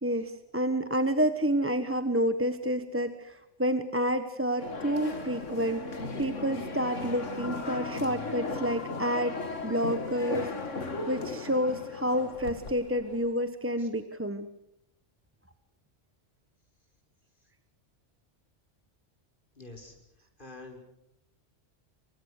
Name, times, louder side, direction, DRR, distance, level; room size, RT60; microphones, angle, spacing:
voice 1, 0.0-9.4 9.6-14.5, equal, 10° right, 9 dB, 1.1 m, -29 dB
sound 1, 4.6-13.3, left 3 dB, 85° left, 2.4 m, -37 dB
voice 2, 19.6-20.8, left 2 dB, 45° left, 2 dB, 5.5 m, -48 dB
27.5 x 24.5 x 6.6 m, 0.82 s
omnidirectional pair, 1.2 m